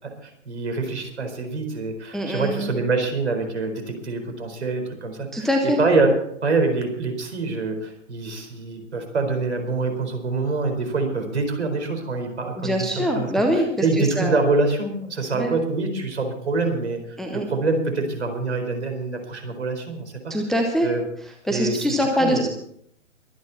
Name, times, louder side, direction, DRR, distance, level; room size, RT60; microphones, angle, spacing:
voice 1, 0.0-13.3 13.8-20.3 20.8-21.0 21.5-21.8 22.2-22.5, right 3 dB, 60° right, 6 dB, 4.5 m, -25 dB
voice 2, 2.1-2.7 5.3-5.8 12.6-14.4 15.3-15.5 17.2-17.5 20.3-20.9 21.5-22.5, equal, ahead, 1 dB, 0.7 m, -23 dB
23.0 x 9.6 x 4.2 m, 0.70 s
figure-of-eight pair, 125°, 37 cm